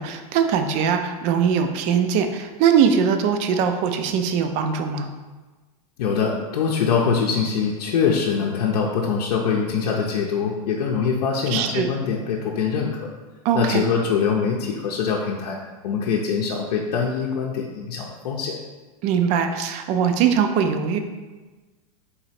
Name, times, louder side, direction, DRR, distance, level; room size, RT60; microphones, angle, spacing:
voice 1, 0.0-5.1 11.5-11.9 13.4-13.8 19.0-21.0, right 7 dB, 35° right, 7 dB, 0.4 m, -21 dB
voice 2, 6.0-13.1 13.5-15.6 15.8-18.6, left 6 dB, 80° left, -2 dB, 0.6 m, -23 dB
4.0 x 3.0 x 4.2 m, 1.3 s
supercardioid pair, 145°, 20 cm